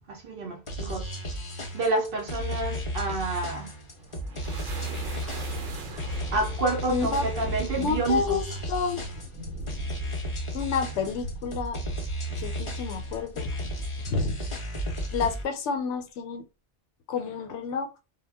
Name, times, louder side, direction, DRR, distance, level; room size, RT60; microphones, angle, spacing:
voice 1, 0.1-1.1 1.7-3.7 6.3-8.4 12.3-12.4, right 2 dB, 60° right, 0.7 m, -29 dB
sound 1, 0.7-15.4, equal, 40° left, 0.5 m, -33 dB
sound 2, 3.8-14.3, right 1 dB, 80° right, 0.9 m, -41 dB
voice 2, 6.9-7.3 7.7-9.1 10.5-11.8 12.4-13.5 14.1-14.4 15.1-16.4 17.1-17.9, left 5 dB, 80° left, 0.9 m, -29 dB
2.2 x 2.1 x 3.3 m
omnidirectional pair, 1.2 m